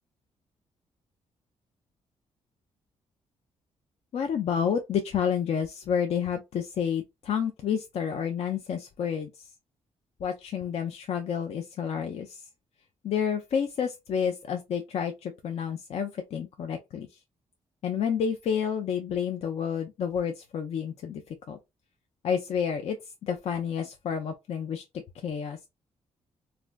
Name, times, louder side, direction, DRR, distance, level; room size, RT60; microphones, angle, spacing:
voice 1, 4.1-9.5 10.2-12.5 13.0-17.1 17.8-21.2 21.5-21.6 22.2-23.0 23.2-24.8 25.1-25.6, left 7 dB, 60° left, 0.4 m, -30 dB
3.2 x 2.5 x 2.2 m
cardioid pair, 90°, 12 cm